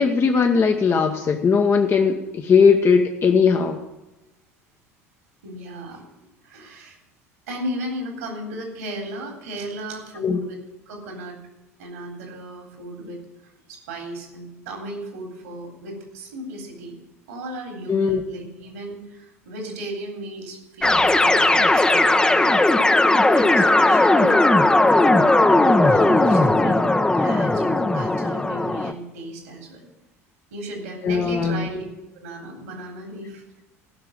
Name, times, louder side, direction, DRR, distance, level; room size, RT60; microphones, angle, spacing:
voice 1, 0.0-3.8 10.2-10.4 17.9-18.2 31.0-31.7, left 5 dB, 30° left, 3 dB, 1.2 m, -18 dB
voice 2, 5.4-7.0 7.5-10.6 10.9-11.4 11.8-22.6 23.3-24.5 25.2-26.9 27.1-29.9 30.5-31.8 32.2-33.6, right 1 dB, 75° right, 2 dB, 3.6 m, -36 dB
sound 1, 20.8-28.9, left 2 dB, 10° left, 0.9 m, -17 dB
16.0 x 6.1 x 7.5 m, 0.99 s
figure-of-eight pair, 70°, 8 cm